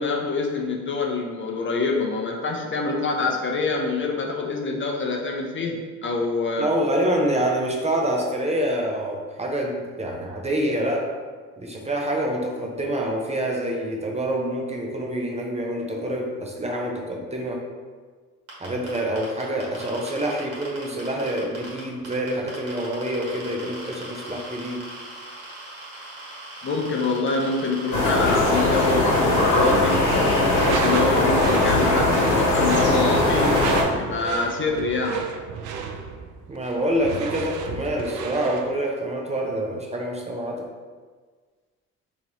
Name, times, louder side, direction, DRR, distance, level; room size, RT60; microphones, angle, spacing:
voice 1, 0.0-6.7 26.6-30.0 30.6-33.6 34.0-35.2, left 3 dB, 40° left, 1 dB, 0.5 m, -26 dB
voice 2, 6.6-11.2 11.6-17.6 18.6-24.9 36.5-40.7, right 1 dB, 20° right, 0 dB, 0.6 m, -26 dB
sound 1, 18.5-21.8 22.0-29.9 30.2-30.6 30.9-31.0 31.2-31.9, right 2 dB, 55° right, 1.5 m, -39 dB
sound 2, 27.9-33.8, left 2 dB, 75° left, 1.1 m, -20 dB
Door / Screech, 30.5-38.7, right 5 dB, 80° right, 0.5 m, -32 dB
2.9 x 2.9 x 3.9 m, 1.5 s
cardioid pair, 90°, 30 cm